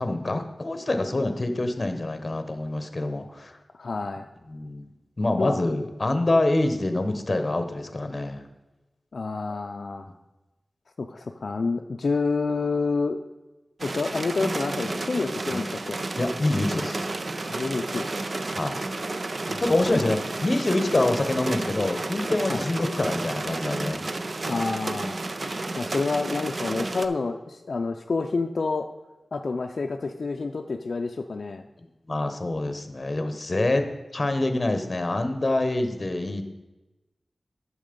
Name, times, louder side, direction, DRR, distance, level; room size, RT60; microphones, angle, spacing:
voice 1, 0.0-3.6 4.5-4.9 5.2-8.4 15.5-15.6 16.2-17.1 18.5-18.8 19.6-24.0 32.1-33.9 34.1-36.4, left 2 dB, 35° left, 8 dB, 1.0 m, -26 dB
voice 2, 3.8-4.3 5.4-5.5 9.1-10.1 11.0-13.2 13.8-16.0 17.5-18.1 19.5-20.0 22.5-22.7 24.5-25.2 25.8-28.9 29.3-31.6, left 4 dB, 70° left, 5 dB, 0.4 m, -28 dB
sound 1, 13.8-27.1, right 2 dB, 50° right, 0.5 m, -31 dB
9.1 x 6.5 x 5.2 m, 1.1 s
wide cardioid pair, 90°, 0 cm